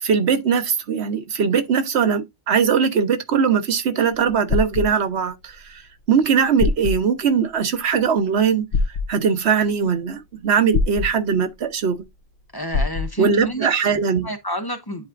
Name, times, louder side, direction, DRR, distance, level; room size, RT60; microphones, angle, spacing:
voice 1, 0.0-5.8 6.1-8.6 9.1-12.0 13.2-14.3, right 6 dB, 85° right, 1.2 m, -20 dB
sound 1, 4.1-4.9 6.2-6.3 6.6-7.0 8.7-9.1 10.7-11.1 12.7-13.1, left 4 dB, 80° left, 1.0 m, -22 dB
voice 2, 12.5-15.1, right 1 dB, 25° left, 0.9 m, -30 dB
10.0 x 4.1 x 2.5 m
omnidirectional pair, 1.1 m